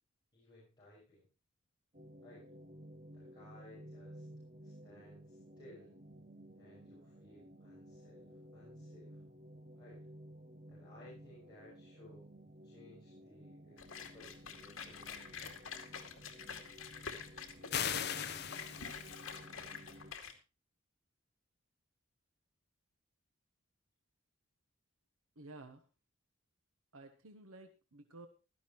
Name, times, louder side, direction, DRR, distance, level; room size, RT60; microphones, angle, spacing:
voice 1, 0.3-1.3 2.2-2.5 3.1-4.3 4.6-6.0 6.6-9.2 9.8-10.1 10.7-12.3 12.6-15.3, left 1 dB, 20° left, -7 dB, 6.3 m, -59 dB
sound 1, 1.9-20.1, equal, 35° right, 1.0 m, -55 dB
sound 2, 13.8-20.3, left 6 dB, 80° left, 2.3 m, -48 dB
sound 3, 17.7-19.3, left 8 dB, 50° left, 0.9 m, -38 dB
voice 2, 25.4-25.9 26.9-28.3, right 2 dB, 80° right, 7 dB, 1.2 m, -53 dB
16.0 x 12.5 x 3.1 m, 0.30 s
head